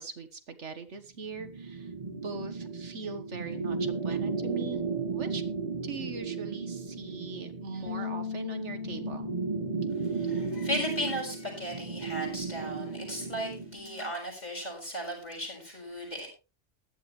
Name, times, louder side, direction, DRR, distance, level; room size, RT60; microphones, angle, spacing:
voice 1, 0.0-4.8 5.1-5.4 5.8-9.3, right 4 dB, 70° right, 9 dB, 1.7 m, -41 dB
sound 1, 1.3-13.8, right 5 dB, 35° right, 1.0 m, -35 dB
sound 2, 7.9-14.1, left 7 dB, 60° left, 2.0 m, -41 dB
voice 2, 10.0-16.3, equal, 35° left, 1 dB, 6.9 m, -36 dB
16.0 x 11.5 x 3.3 m, 0.31 s
omnidirectional pair, 1.3 m